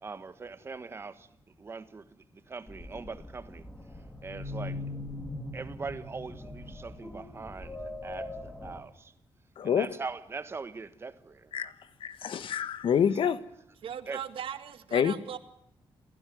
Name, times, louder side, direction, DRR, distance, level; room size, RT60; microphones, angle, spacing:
voice 1, 0.0-3.6 4.2-4.8 5.5-9.1 9.6-11.5 14.1-14.2, right 4 dB, 30° right, 1.4 m, -41 dB
sound 1, 2.7-8.8, left 2 dB, 15° left, 2.7 m, -41 dB
voice 2, 9.6-9.9 11.5-11.7 12.0-13.4 14.9-15.1, left 8 dB, 70° left, 1.5 m, -26 dB
voice 3, 13.8-15.4, right 9 dB, 80° right, 2.0 m, -38 dB
28.0 x 16.0 x 9.4 m
wide cardioid pair, 160°, 9 cm